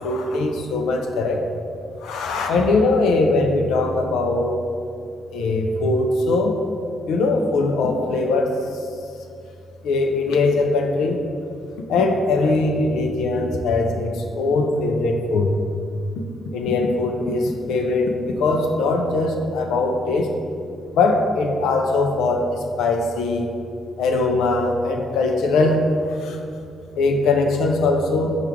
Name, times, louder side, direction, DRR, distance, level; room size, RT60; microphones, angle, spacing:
voice 1, 0.0-1.4 2.0-4.6 5.3-6.6 7.1-8.6 9.8-11.2 11.9-15.5 16.5-20.3 20.9-23.5 24.0-26.4 27.0-28.4, left 3 dB, 85° left, 3 dB, 0.4 m, -21 dB
4.4 x 2.4 x 4.8 m, 2.4 s
supercardioid pair, 60°, 0 cm